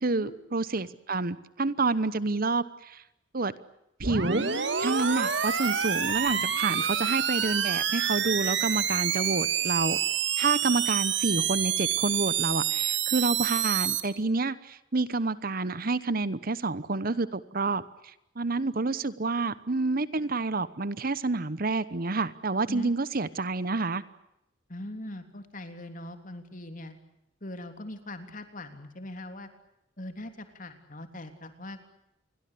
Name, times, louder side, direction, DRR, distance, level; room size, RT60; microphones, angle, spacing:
voice 1, 0.0-3.0 3.3-3.5 4.0-4.4 4.8-10.0 10.4-24.0, right 3 dB, 50° right, 16 dB, 1.0 m, -28 dB
sound 1, 4.0-14.0, right 8 dB, 65° right, 2.3 m, -28 dB
voice 2, 24.7-27.0 27.4-29.5 30.0-31.9, left 1 dB, 45° left, 8 dB, 3.4 m, -41 dB
29.0 x 22.5 x 8.5 m, 0.83 s
head